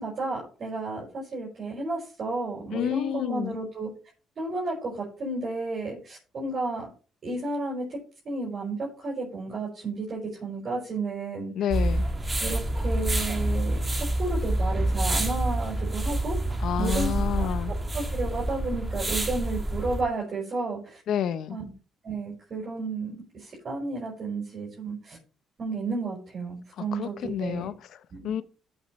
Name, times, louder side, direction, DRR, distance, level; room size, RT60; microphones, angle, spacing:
voice 1, 0.0-3.9 4.4-6.9 7.2-8.0 8.2-11.5 12.4-16.5 16.8-21.0 21.5-21.7 22.0-25.2 25.6-27.7 28.1-28.4, right 3 dB, 45° right, 5.5 m, -32 dB
voice 2, 2.7-3.6 11.6-12.1 16.6-17.7 21.1-21.6 26.8-28.0 28.2-28.4, left 9 dB, 70° left, 0.8 m, -29 dB
sound 1, 11.7-20.0, right 1 dB, 20° right, 2.2 m, -27 dB
14.5 x 7.4 x 3.2 m
cardioid pair, 105°, 0 cm